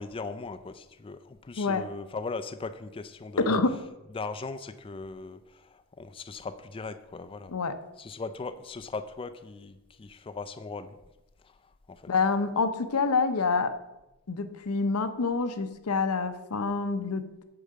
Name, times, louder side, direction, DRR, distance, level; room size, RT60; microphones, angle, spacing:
voice 1, 0.0-3.6 4.1-7.5 8.0-11.0 11.4-12.1, left 4 dB, 25° left, 10 dB, 0.4 m, -39 dB
voice 2, 1.6-1.9 3.5-3.8 7.5-7.7 12.1-13.7 14.3-17.3, left 4 dB, 85° left, 10 dB, 0.7 m, -27 dB
8.4 x 4.9 x 6.5 m, 0.99 s
head